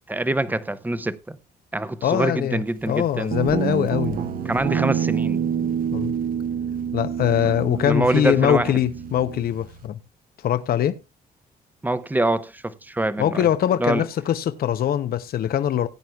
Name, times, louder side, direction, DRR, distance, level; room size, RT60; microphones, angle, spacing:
voice 1, 0.1-1.4 1.7-3.3 4.4-5.7 7.8-8.7 11.8-13.5 13.8-14.1, right 2 dB, 10° right, 0.7 m, -25 dB
voice 2, 2.0-4.2 5.9-6.1 6.9-10.0 10.4-11.0 13.2-15.9, left 10 dB, 60° left, 0.6 m, -22 dB
Guitar, 3.3-9.9, right 8 dB, 55° right, 1.1 m, -27 dB
17.0 x 9.3 x 2.2 m
cardioid pair, 140°, 17 cm